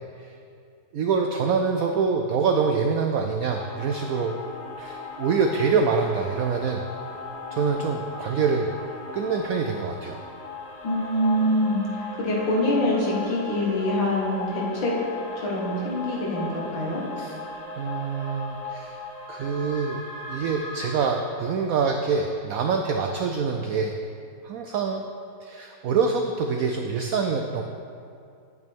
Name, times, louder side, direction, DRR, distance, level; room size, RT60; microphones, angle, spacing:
voice 1, 0.9-4.4 4.8-6.8 7.5-8.7 9.1-10.2 17.2-17.3 17.8-19.0 19.3-20.0 20.3-24.0 24.4-25.1 25.4-27.6, right 5 dB, 85° right, 4 dB, 0.7 m, -25 dB
sound 1, 3.5-21.0, left 3 dB, 30° left, 0.8 m, -37 dB
voice 2, 10.8-14.9 15.4-17.0, left 1 dB, 90° left, -3 dB, 2.3 m, -25 dB
9.2 x 8.3 x 3.6 m, 2.5 s
omnidirectional pair, 2.0 m